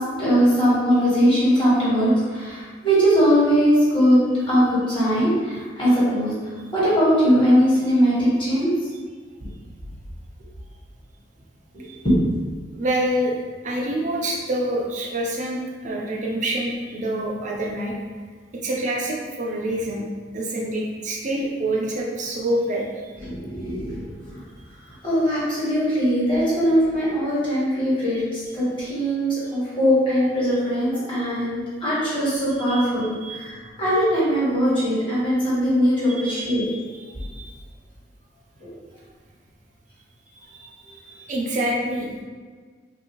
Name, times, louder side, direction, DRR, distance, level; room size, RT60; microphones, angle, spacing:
voice 1, 0.2-4.2 4.5-6.3 6.7-8.7 9.4-9.5 11.7-12.2 23.2-24.0 25.0-36.6 38.6-38.7, equal, 25° left, -10 dB, 1.4 m, -20 dB
voice 2, 12.7-13.3 13.6-17.9 18.6-20.0 20.3-23.1 28.1-28.2 32.7-33.5 36.1-37.5 40.5-42.2, right 1 dB, 40° right, -2 dB, 0.5 m, -27 dB
3.2 x 2.7 x 2.9 m, 1.5 s
head